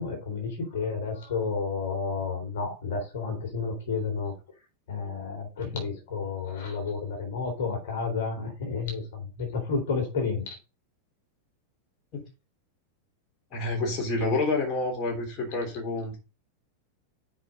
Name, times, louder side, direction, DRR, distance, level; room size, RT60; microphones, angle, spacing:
voice 1, 0.0-4.3 4.9-10.6, left 5 dB, 55° left, 2 dB, 3.7 m, -31 dB
voice 2, 13.5-16.2, left 2 dB, 35° left, 0 dB, 3.6 m, -28 dB
7.3 x 5.5 x 5.5 m, 0.29 s
figure-of-eight pair, 90°, 0 cm